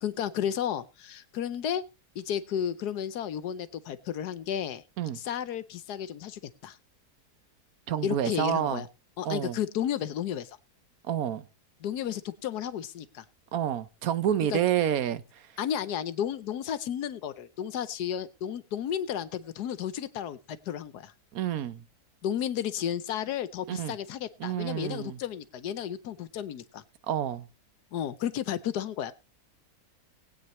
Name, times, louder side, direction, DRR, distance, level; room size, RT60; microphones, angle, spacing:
voice 1, 0.0-1.8 2.1-4.8 5.1-6.8 8.0-8.9 9.2-10.5 11.8-13.2 14.5-14.6 15.6-21.1 22.2-26.8 27.9-29.1, left 9 dB, 80° left, 1.3 m, -33 dB
voice 2, 7.9-8.8 9.2-9.6 11.1-11.4 13.5-15.4 21.3-21.8 23.7-24.0 24.4-25.2 27.1-27.4, right 10 dB, 65° right, 1.2 m, -29 dB
19.5 x 8.6 x 3.1 m
omnidirectional pair, 1.7 m